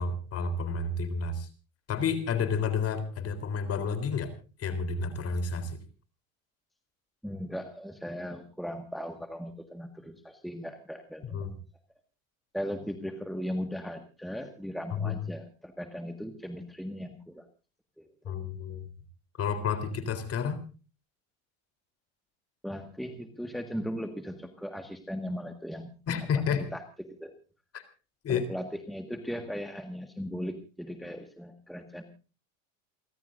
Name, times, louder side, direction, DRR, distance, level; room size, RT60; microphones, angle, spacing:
voice 1, 0.0-1.5 1.9-4.3 4.6-5.8 11.3-11.5 14.9-15.2 18.3-18.9 19.4-20.6 26.1-26.7 27.7-27.8 28.2-28.5, left 5 dB, 35° left, 11 dB, 3.7 m, -30 dB
voice 2, 7.2-11.5 12.5-17.5 18.0-18.3 22.6-25.9 26.5-27.4 28.3-32.0, equal, ahead, 6 dB, 1.7 m, -38 dB
29.0 x 14.0 x 2.6 m, 0.35 s
supercardioid pair, 120°, 41 cm